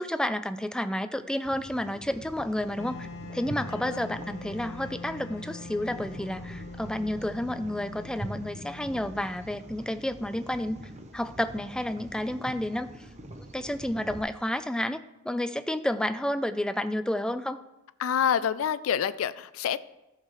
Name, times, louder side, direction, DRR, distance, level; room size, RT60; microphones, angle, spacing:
voice 1, 0.0-3.1 3.3-10.8 11.1-13.1 13.5-15.0 15.2-17.6, left 1 dB, 5° left, 11 dB, 0.3 m, -30 dB
sound 1, 1.4-14.2, right 1 dB, 35° right, 0.8 m, -44 dB
Wind instrument woodwind instrument, 2.8-9.7, left 3 dB, 60° left, 0.7 m, -43 dB
voice 2, 3.7-4.1 18.0-19.8, left 8 dB, 90° left, 15 dB, 0.4 m, -27 dB
14.0 x 6.6 x 3.1 m, 0.97 s
head